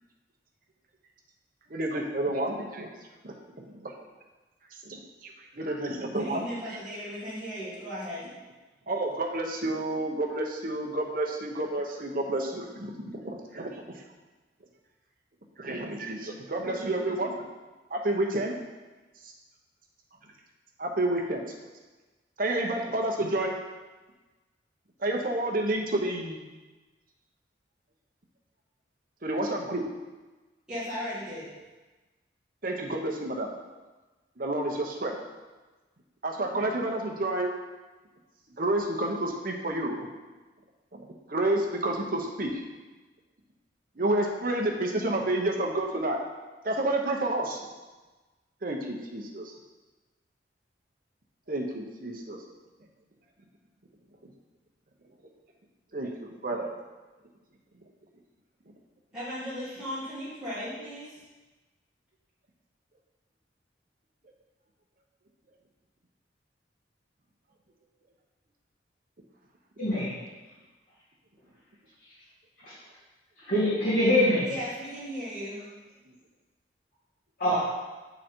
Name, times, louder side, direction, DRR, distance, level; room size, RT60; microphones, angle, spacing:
voice 1, 1.7-2.9 3.2-3.9 4.8-5.0 5.2-6.4 8.9-14.0 15.6-17.4 17.9-18.5 20.8-21.5 22.4-23.5 25.0-26.4 29.2-29.8 32.6-33.5 34.4-35.2 36.2-37.5 38.6-40.0 40.9-41.0 41.3-42.5 44.0-46.2 46.6-47.6 48.6-49.5 51.5-52.5 55.9-56.1 56.4-56.7, right 1 dB, 50° right, 1 dB, 0.9 m, -30 dB
voice 2, 6.1-8.3 30.7-31.5 59.1-61.2 74.4-75.6, equal, 5° right, -13 dB, 2.0 m, -36 dB
voice 3, 69.8-70.1 72.6-72.7 73.4-74.5 77.4-77.8, left 1 dB, 55° left, -13 dB, 2.2 m, -24 dB
7.7 x 4.0 x 4.4 m, 1.2 s
head